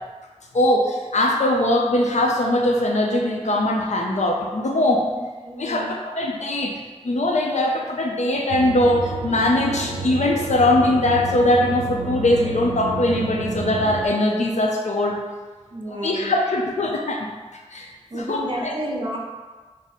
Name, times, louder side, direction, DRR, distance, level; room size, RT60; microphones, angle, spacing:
voice 1, 0.5-5.1 5.6-15.2 15.9-17.3 17.7-18.7, left 1 dB, 90° left, 0 dB, 0.5 m, -21 dB
voice 2, 5.0-5.9 15.7-16.3 18.1-19.2, right 1 dB, 45° right, -2 dB, 0.6 m, -31 dB
sound 1, 8.5-14.1, right 3 dB, 85° right, 0.4 m, -30 dB
3.6 x 2.0 x 4.2 m, 1.4 s
wide cardioid pair, 70°, 12 cm